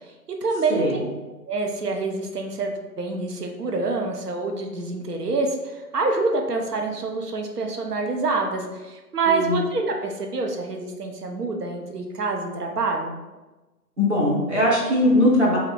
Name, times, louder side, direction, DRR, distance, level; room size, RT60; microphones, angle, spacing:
voice 1, 0.4-1.1 1.5-13.1, right 3 dB, 75° right, 2 dB, 0.7 m, -26 dB
voice 2, 9.3-9.6 14.0-15.6, left 1 dB, 45° right, -5 dB, 1.0 m, -20 dB
2.8 x 2.4 x 3.3 m, 1.1 s
figure-of-eight pair, 170°, 48 cm